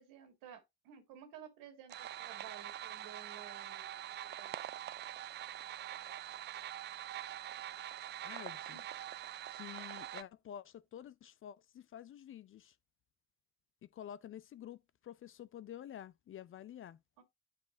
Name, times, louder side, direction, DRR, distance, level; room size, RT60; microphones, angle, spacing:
voice 1, 0.0-4.0 4.4-4.6 8.7-8.8 17.2-17.3, right 8 dB, 65° right, 2.2 m, -54 dB
sound 1, 1.9-10.2, right 12 dB, 30° right, 0.4 m, -44 dB
voice 2, 8.2-8.8 9.5-12.8 13.8-17.0, left 10 dB, 35° left, 0.5 m, -50 dB
9.4 x 4.1 x 4.0 m
figure-of-eight pair, 50°, 35 cm